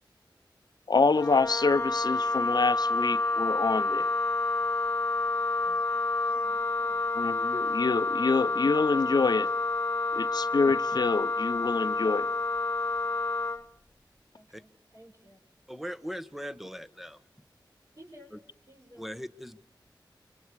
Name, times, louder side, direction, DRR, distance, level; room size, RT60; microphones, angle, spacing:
voice 1, 0.9-4.1 7.2-9.5 10.1-12.3, left 4 dB, 60° left, 0.9 m, -26 dB
Wind instrument woodwind instrument, 1.1-13.6, left 3 dB, 30° left, 1.6 m, -29 dB
voice 2, 6.3-7.0 14.3-15.4 18.0-18.3 18.7-19.1, equal, 45° right, 6.5 m, -54 dB
voice 3, 15.7-17.2 19.0-19.6, equal, 5° right, 1.4 m, -39 dB
29.0 x 25.0 x 4.8 m
wide cardioid pair, 55°, 8 cm